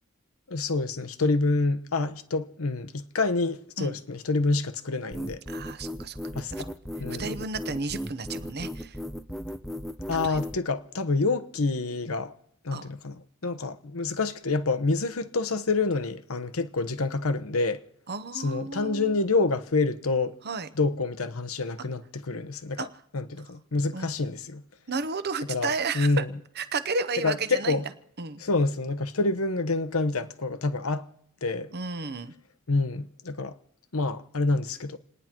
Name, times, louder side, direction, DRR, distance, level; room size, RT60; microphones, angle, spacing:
voice 1, 0.5-5.4 6.3-6.7 7.0-7.4 10.1-12.3 12.6-17.8 18.3-20.3 20.8-22.9 23.1-24.6 25.5-26.3 27.2-27.8 28.4-31.1 31.4-31.7 32.7-33.6 33.9-35.0, left 3 dB, 75° left, 1.1 m, -27 dB
sound 1, 5.1-10.6, equal, ahead, 0.7 m, -36 dB
voice 2, 5.5-6.2 6.5-6.6 7.2-9.0 10.2-10.4 12.7-12.9 18.1-19.1 20.4-20.7 22.8-23.0 23.9-24.1 24.9-26.2 26.6-27.8 28.2-28.4 31.7-32.3, right 4 dB, 50° right, 1.0 m, -32 dB
29.0 x 10.0 x 4.5 m
head